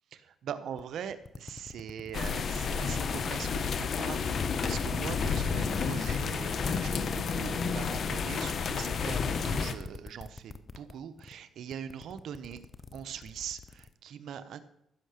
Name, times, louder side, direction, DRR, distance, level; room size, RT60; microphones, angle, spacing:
voice 1, 0.1-12.6 12.9-14.6, right 8 dB, 70° right, 11 dB, 1.1 m, -42 dB
sound 1, 0.8-0.9 1.2-4.1 4.5-10.9 11.2-11.5 11.7-13.9, left 4 dB, 35° left, 0.9 m, -44 dB
sound 2, 2.1-9.7, left 5 dB, 55° left, 1.2 m, -31 dB
15.0 x 6.7 x 6.6 m, 0.77 s
cardioid pair, 90°, 0 cm